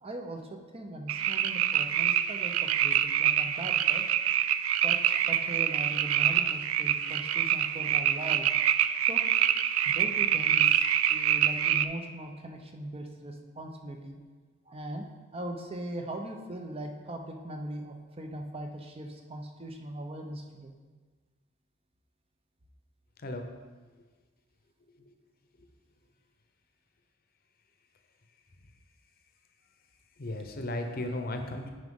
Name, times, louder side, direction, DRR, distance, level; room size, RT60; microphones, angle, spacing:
voice 1, 0.0-4.0 4.8-8.5 9.1-9.2 9.9-10.8 11.1-14.2 14.7-20.7, right 1 dB, 30° right, 4 dB, 0.7 m, -40 dB
sound 1, 1.1-11.8, right 10 dB, 80° right, 0.3 m, -26 dB
voice 2, 30.2-31.7, left 1 dB, 45° left, 5 dB, 0.7 m, -35 dB
9.5 x 5.0 x 3.8 m, 1.4 s
head